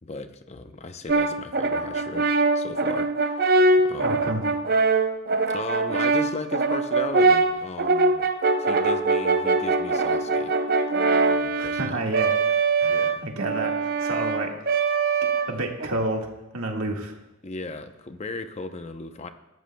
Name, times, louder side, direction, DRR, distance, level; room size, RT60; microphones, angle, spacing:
voice 1, 0.0-2.3 2.5-3.5 3.8-4.3 5.4-8.3 8.6-10.5 11.3-12.2 12.9-13.2 17.4-19.3, left 2 dB, 30° left, 8 dB, 0.7 m, -36 dB
Brass instrument, 1.1-15.9, right 3 dB, 45° right, 0.6 m, -23 dB
voice 2, 4.0-4.4 11.6-14.5 15.2-17.2, right 2 dB, 85° right, 1 dB, 1.8 m, -30 dB
20.0 x 13.5 x 2.3 m, 0.97 s
head